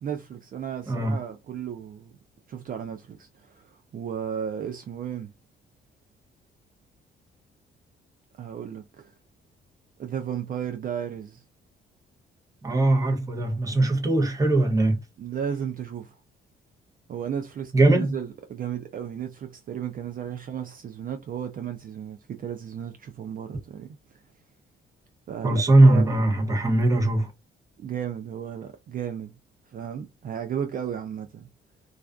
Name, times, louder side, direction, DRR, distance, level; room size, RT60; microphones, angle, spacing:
voice 1, 0.0-2.1 2.5-5.3 8.4-9.1 10.0-11.4 15.2-16.2 17.1-24.2 25.3-26.2 27.8-29.3 29.7-31.5, right 8 dB, 45° right, 0.4 m, -34 dB
voice 2, 0.9-1.2 12.6-15.0 17.7-18.1 25.4-27.3, right 2 dB, 15° right, 0.7 m, -20 dB
2.3 x 2.3 x 2.3 m
cardioid pair, 90°, 20 cm